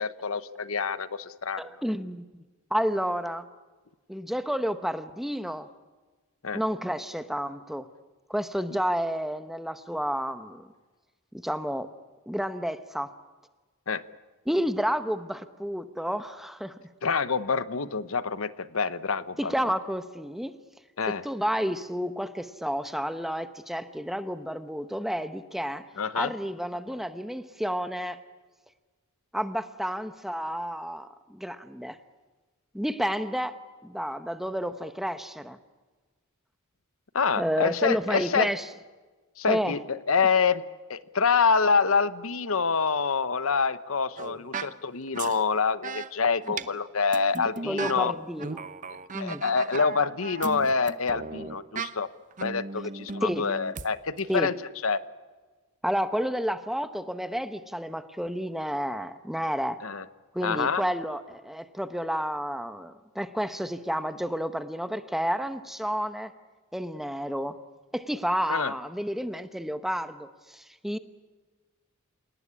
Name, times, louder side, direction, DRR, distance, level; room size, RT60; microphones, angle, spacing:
voice 1, 0.0-1.6 6.4-6.6 13.9-14.0 17.0-19.5 21.0-21.2 26.0-26.3 37.1-38.5 39.4-40.6 40.9-48.1 49.2-52.1 52.4-54.5 54.8-55.0 59.8-60.0 60.4-60.8 68.5-68.7, left 5 dB, 70° left, 14 dB, 0.9 m, -26 dB
voice 2, 1.6-2.2 2.7-3.5 4.1-5.7 6.5-7.9 8.3-10.7 11.4-11.9 12.3-13.1 14.5-16.8 19.4-20.6 21.2-25.9 26.1-28.2 29.3-32.0 32.7-35.6 37.4-38.7 39.5-39.8 47.6-48.7 49.1-49.4 53.2-53.5 54.3-54.5 55.8-59.8 60.3-66.3 66.7-67.6 67.9-71.0, equal, ahead, 10 dB, 1.0 m, -30 dB
sound 1, 44.2-44.7 45.1-45.4 45.8-46.1 46.4-46.7 47.1-48.0 48.3-51.9 52.3-53.8 54.2-54.3, right 4 dB, 35° right, 0.8 m, -37 dB
28.0 x 19.0 x 9.9 m, 1.3 s
head